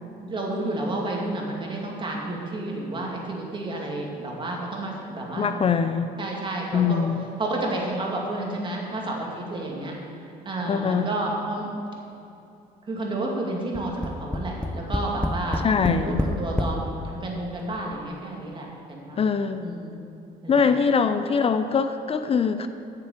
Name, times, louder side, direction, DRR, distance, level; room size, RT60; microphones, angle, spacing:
voice 1, 0.2-5.6 6.2-7.0 7.4-9.9 10.5-11.7 12.9-19.2 19.6-20.0 20.4-20.6, right 2 dB, 30° right, -1 dB, 2.3 m, -31 dB
voice 2, 5.4-6.1 6.7-7.3 10.7-11.1 15.6-16.2 19.2-19.7 20.5-22.7, left 6 dB, 35° left, 9 dB, 0.5 m, -23 dB
Tap, 13.7-16.8 17.6-17.7 18.0-18.1, left 1 dB, 5° left, 0.8 m, -27 dB
8.8 x 6.8 x 8.1 m, 2.7 s
cardioid pair, 110°, 17 cm